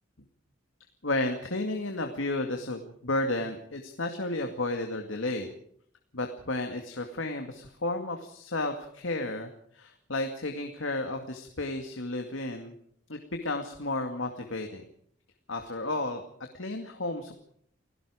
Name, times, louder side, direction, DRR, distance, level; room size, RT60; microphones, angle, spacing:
voice 1, 1.0-5.5 6.1-12.7 13.1-14.8 15.5-16.2 16.5-17.4, left 2 dB, 85° left, 4 dB, 2.3 m, -32 dB
29.5 x 17.5 x 5.1 m, 0.66 s
head